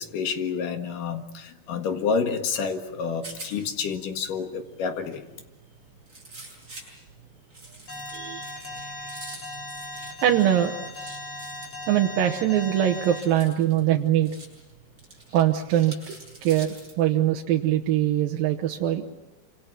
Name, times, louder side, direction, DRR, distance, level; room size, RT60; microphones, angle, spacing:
voice 1, 0.0-5.2, left 5 dB, 70° left, 6 dB, 3.3 m, -29 dB
Rattle, 2.8-17.0, right 2 dB, 20° right, 7.7 m, -47 dB
Alarm, 7.9-13.2, left 2 dB, 40° left, 6.2 m, -37 dB
voice 2, 8.1-9.1 10.2-10.8 11.9-14.3 15.3-16.1 16.4-19.0, right 11 dB, 85° right, 2 dB, 2.9 m, -23 dB
27.5 x 26.5 x 6.1 m, 1.0 s
omnidirectional pair, 4.0 m